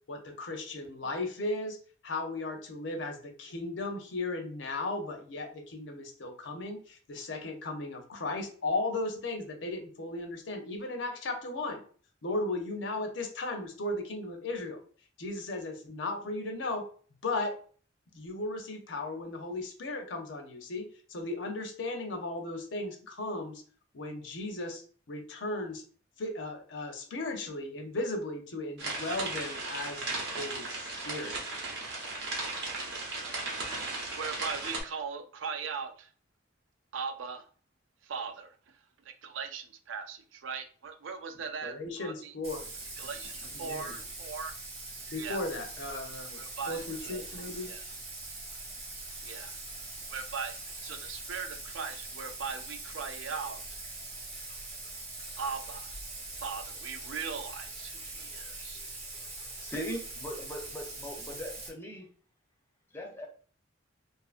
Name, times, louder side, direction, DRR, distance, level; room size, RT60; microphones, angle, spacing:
voice 1, 0.1-1.8 2.0-11.8 12.2-14.8 15.2-16.9 17.2-17.6 18.1-23.6 23.9-24.8 25.1-25.8 26.2-31.4 41.6-42.6 43.6-43.9 45.1-46.4 46.7-47.7, left 2 dB, 70° left, 0.6 m, -36 dB
sound 1, 28.8-34.8, right 3 dB, 60° right, 0.8 m, -36 dB
voice 2, 34.2-36.1 36.9-37.5 38.0-42.3 43.0-44.6 45.0-45.4 46.3-47.9 49.2-49.6 50.1-53.6 55.4-55.9 56.3-58.8, right 5 dB, 80° right, 0.4 m, -39 dB
Bathtub (filling or washing), 42.4-61.7, right 2 dB, 35° right, 0.9 m, -42 dB
voice 3, 59.1-62.1 62.9-63.3, equal, 10° left, 0.6 m, -40 dB
2.6 x 2.4 x 2.4 m
head